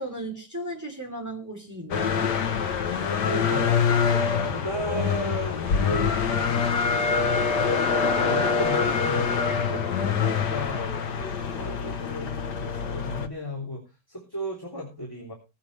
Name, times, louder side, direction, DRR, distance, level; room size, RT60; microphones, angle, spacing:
voice 1, 0.0-2.3, right 1 dB, 10° right, 3.3 m, -35 dB
sound 1, 1.9-13.3, left 6 dB, 80° left, 1.7 m, -25 dB
voice 2, 3.2-3.8 4.3-7.2 8.0-12.3 12.6-13.8 14.1-15.3, equal, 15° left, 3.5 m, -35 dB
20.5 x 8.4 x 3.4 m
omnidirectional pair, 1.8 m